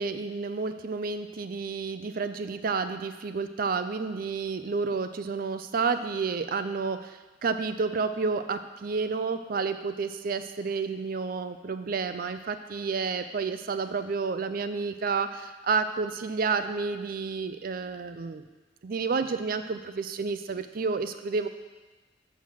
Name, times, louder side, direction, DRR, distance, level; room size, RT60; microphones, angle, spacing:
voice 1, 0.0-18.4 18.8-21.5, right 4 dB, 50° right, 10 dB, 0.4 m, -30 dB
7.2 x 5.8 x 6.2 m, 1.2 s
head